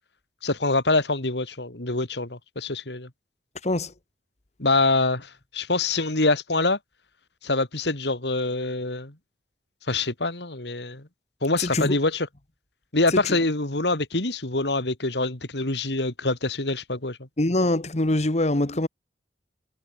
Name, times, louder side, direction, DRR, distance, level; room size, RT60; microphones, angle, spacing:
voice 1, 0.4-3.1 4.6-6.8 7.4-9.1 9.9-11.1 11.4-12.3 12.9-17.2, left 2 dB, 75° left, 2.9 m, -25 dB
voice 2, 3.6-3.9 11.6-11.9 13.1-13.4 17.4-18.9, left 1 dB, 40° left, 1.5 m, -24 dB
head